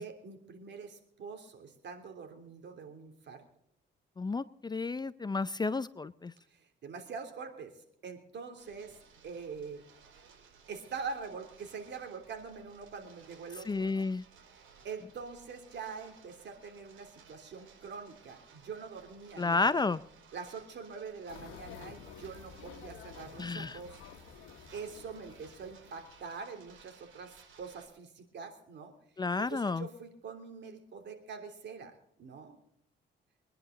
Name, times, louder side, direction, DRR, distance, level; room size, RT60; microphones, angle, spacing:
voice 1, 0.0-3.4 6.5-7.7 8.0-9.0 9.2-9.8 10.7-14.1 14.8-19.9 20.3-24.0 24.7-28.9 29.4-31.9 32.2-32.6, right 5 dB, 60° right, 5 dB, 3.3 m, -44 dB
voice 2, 4.2-6.3 13.7-14.2 19.4-20.0 23.4-23.8 29.2-29.9, left 3 dB, 20° left, 15 dB, 0.5 m, -31 dB
sound 1, 8.6-27.9, right 6 dB, 85° right, 4.7 m, -59 dB
sound 2, 21.3-26.3, left 8 dB, 85° left, 1.4 m, -51 dB
23.5 x 10.5 x 3.9 m, 0.72 s
cardioid pair, 90°, 20 cm